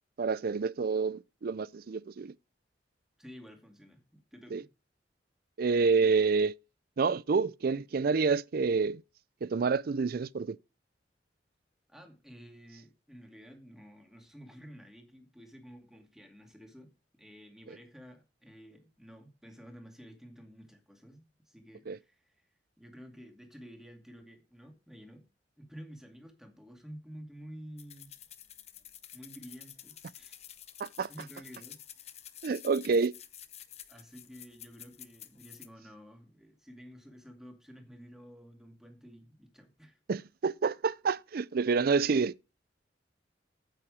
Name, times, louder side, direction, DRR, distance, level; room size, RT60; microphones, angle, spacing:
voice 1, 0.2-2.3 4.5-4.6 5.6-6.5 7.0-9.0 9.4-10.6 21.9-22.0 30.8-31.1 32.4-33.1 40.1-42.3, right 4 dB, 55° right, 0.4 m, -28 dB
voice 2, 3.2-4.7 11.9-16.9 17.2-22.4 22.8-25.3 25.6-28.1 29.1-30.4 31.1-31.8 33.9-40.0, equal, 5° right, 2.3 m, -51 dB
sound 1, 27.8-35.7, left 11 dB, 35° left, 0.8 m, -50 dB
9.0 x 8.8 x 5.0 m
head